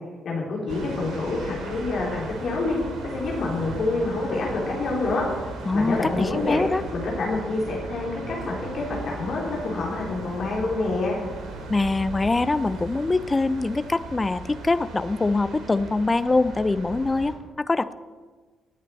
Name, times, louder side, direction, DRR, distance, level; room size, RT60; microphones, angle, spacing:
voice 1, 0.2-2.8 3.1-5.2 5.7-6.6 6.9-11.2, left 3 dB, 50° left, -3 dB, 4.0 m, -27 dB
sound 1, 0.7-17.3, right 3 dB, 55° right, 3.0 m, -37 dB
voice 2, 5.7-6.8 11.7-17.9, left 3 dB, 25° left, 14 dB, 0.7 m, -24 dB
20.0 x 8.4 x 4.4 m, 1.4 s
figure-of-eight pair, 45°, 0 cm